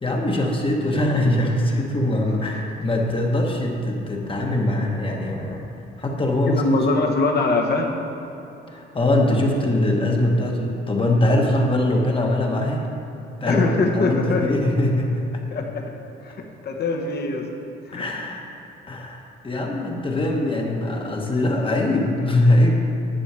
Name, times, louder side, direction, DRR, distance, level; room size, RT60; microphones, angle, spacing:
voice 1, 0.0-5.6 6.0-7.0 8.7-12.9 13.4-15.4 17.9-18.5 18.9-22.7, left 1 dB, 25° left, 0 dB, 1.2 m, -22 dB
voice 2, 6.5-7.9 13.5-14.5 15.5-15.9 16.2-17.5 17.9-18.0, left 3 dB, 55° left, 2 dB, 1.2 m, -23 dB
10.0 x 5.5 x 4.8 m, 2.9 s
cardioid pair, 90°, 20 cm